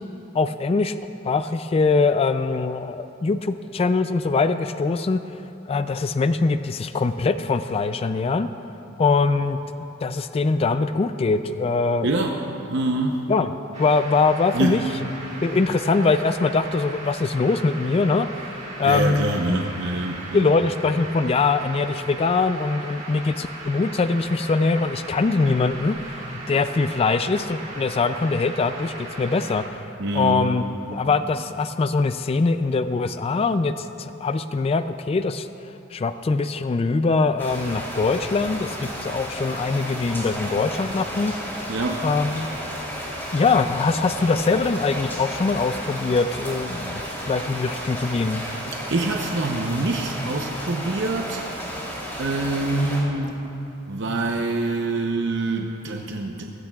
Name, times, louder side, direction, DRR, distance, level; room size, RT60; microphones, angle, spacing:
voice 1, 0.3-0.9 1.2-5.2 5.7-8.5 9.0-9.6 10.0-12.1 13.3-13.5 13.8-14.8 15.4-19.6 20.3-29.8 30.1-30.6 30.9-35.5 35.9-41.3 42.0-42.5 43.3-48.4, left 4 dB, 30° left, 11 dB, 0.3 m, -22 dB
voice 2, 12.0-12.4 12.7-13.2 14.5-14.8 18.8-20.5 30.0-30.5 41.7-42.0 48.7-51.5 52.2-53.4 53.9-56.4, right 2 dB, 65° right, 2 dB, 0.7 m, -25 dB
sound 1, 13.7-29.7, right 2 dB, 40° right, 2.5 m, -38 dB
sound 2, 37.4-53.0, equal, 10° left, 3.0 m, -33 dB
20.0 x 15.0 x 2.4 m, 2.9 s
head